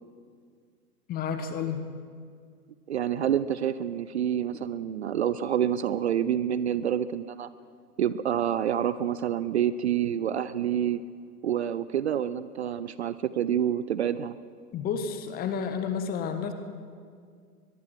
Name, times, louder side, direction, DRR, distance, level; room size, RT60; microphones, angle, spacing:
voice 1, 1.1-1.8 14.7-16.5, left 6 dB, 20° left, 8 dB, 1.7 m, -31 dB
voice 2, 2.9-7.5 8.0-11.0 11.4-14.3, right 10 dB, 45° right, 15 dB, 0.7 m, -27 dB
22.5 x 22.5 x 6.1 m, 2.1 s
figure-of-eight pair, 110°, 46 cm